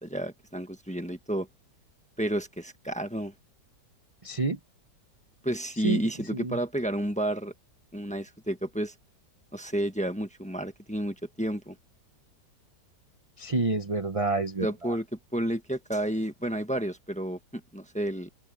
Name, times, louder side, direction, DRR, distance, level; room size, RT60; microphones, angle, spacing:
voice 1, 0.0-1.5 2.2-3.3 5.4-7.5 7.9-8.9 9.5-11.8 14.6-15.0 15.3-18.3, right 1 dB, 5° left, 1.1 m, -31 dB
voice 2, 4.2-4.6 5.8-6.6 13.4-15.0, right 3 dB, 30° right, 0.7 m, -29 dB
open air
omnidirectional pair, 1.9 m